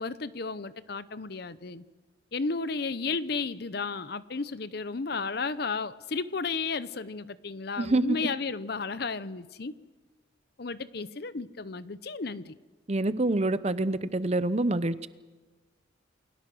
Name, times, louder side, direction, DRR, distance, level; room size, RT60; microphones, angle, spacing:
voice 1, 0.0-1.8 2.3-9.7 10.6-12.5, left 4 dB, 55° left, 0.7 m, -33 dB
voice 2, 12.9-15.1, right 2 dB, 35° right, 0.7 m, -26 dB
29.0 x 21.5 x 6.2 m
head